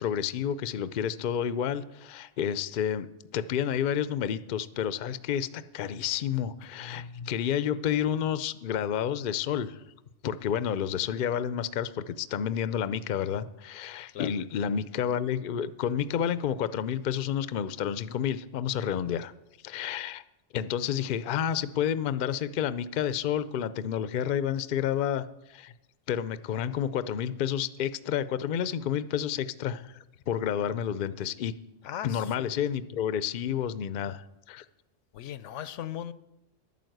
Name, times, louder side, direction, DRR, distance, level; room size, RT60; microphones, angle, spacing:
voice 1, 0.0-3.1 3.3-9.8 10.2-19.3 19.6-20.2 20.5-25.7 26.1-31.5 32.0-34.6, left 9 dB, 55° left, 14 dB, 0.6 m, -30 dB
voice 2, 35.1-36.1, left 10 dB, 85° left, 15 dB, 1.0 m, -37 dB
11.5 x 9.2 x 7.8 m, 0.94 s
omnidirectional pair, 1.2 m